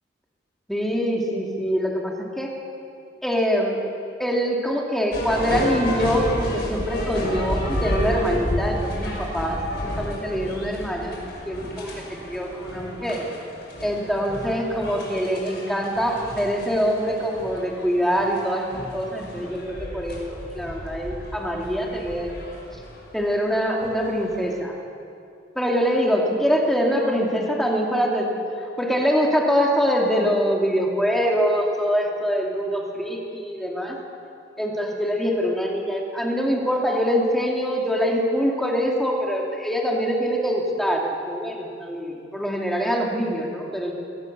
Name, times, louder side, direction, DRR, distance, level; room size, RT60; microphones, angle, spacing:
voice 1, 0.7-2.5 3.2-3.8 4.2-9.6 9.8-11.1 11.5-13.2 13.8-18.6 18.9-22.3 23.1-24.7 25.5-28.3 28.6-34.0 34.6-43.9, equal, ahead, -1 dB, 2.7 m, -24 dB
sound 1, 5.1-24.5, equal, 60° left, 5.6 m, -32 dB
23.5 x 18.0 x 6.8 m, 2.5 s
head